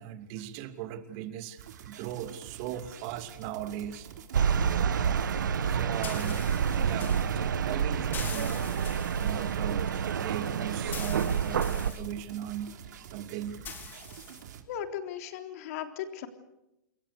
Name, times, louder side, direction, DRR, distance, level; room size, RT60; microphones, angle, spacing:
voice 1, 0.0-4.1 5.6-8.8 9.2-12.7 13.1-13.6, right 11 dB, 40° right, 9 dB, 2.7 m, -39 dB
sound 1, 1.6-14.6, right 9 dB, 70° right, 3.7 m, -48 dB
sound 2, 3.0-14.4, left 6 dB, 20° left, 3.3 m, -46 dB
sound 3, 4.3-11.9, right 7 dB, 85° right, 1.5 m, -28 dB
voice 2, 14.6-16.3, left 9 dB, 55° left, 6 dB, 3.6 m, -37 dB
27.5 x 23.0 x 6.7 m, 0.89 s
hypercardioid pair, 135°, 10 cm